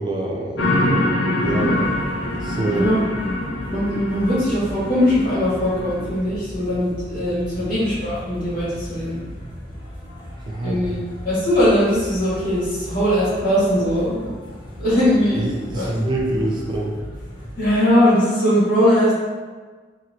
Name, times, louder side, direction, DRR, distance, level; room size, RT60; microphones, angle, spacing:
voice 1, 0.0-1.8 2.4-2.9 7.5-7.6 10.5-10.8 15.4-17.0, right 2 dB, 25° right, -2 dB, 0.3 m, -26 dB
sound 1, 0.6-6.1, left 1 dB, 85° left, 0.5 m, -24 dB
sound 2, 1.4-17.7, equal, 25° left, 0.7 m, -36 dB
voice 2, 3.7-9.2 10.6-14.3 14.8-16.2 17.6-19.1, equal, 50° left, -10 dB, 1.5 m, -20 dB
3.0 x 2.8 x 2.6 m, 1.4 s
head